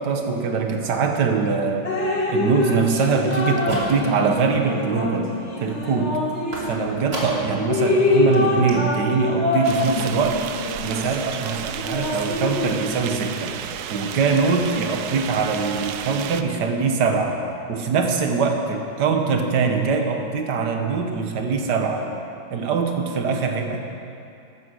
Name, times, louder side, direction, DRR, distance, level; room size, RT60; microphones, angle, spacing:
voice 1, 0.0-1.9 2.3-5.3 5.6-6.2 6.7-10.4 10.8-13.5 13.9-17.4 17.7-22.1 22.5-23.8, right 5 dB, 55° right, 4 dB, 1.8 m, -23 dB
Drip, 1.8-7.1 7.5-12.9, left 2 dB, 35° left, 2.1 m, -25 dB
sound 1, 3.2-4.4 4.7-5.2 6.5-7.6 8.0-8.1 8.3-8.4 8.7-8.8, right 1 dB, 30° right, 2.6 m, -34 dB
sound 2, 9.6-16.4, right 9 dB, 70° right, 0.9 m, -32 dB
14.5 x 13.0 x 6.4 m, 2.7 s
omnidirectional pair, 2.3 m